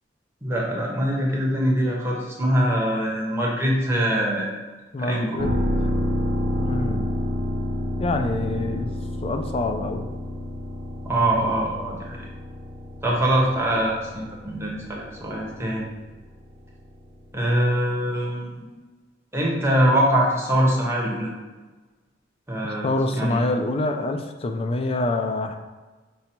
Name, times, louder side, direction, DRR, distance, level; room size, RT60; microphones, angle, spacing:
voice 1, 0.4-4.5 5.0-5.4 11.0-12.2 13.0-15.9 17.3-18.6 19.3-21.3 22.5-23.4, right 1 dB, 15° right, -3 dB, 0.9 m, -23 dB
voice 2, 4.9-5.5 6.6-7.1 8.0-8.9 9.2-10.1 22.6-25.6, left 2 dB, 30° left, 5 dB, 0.3 m, -26 dB
sound 1, 5.4-16.9 17.3-17.4, left 1 dB, 55° right, 0.8 m, -29 dB
5.3 x 2.0 x 4.4 m, 1.3 s
head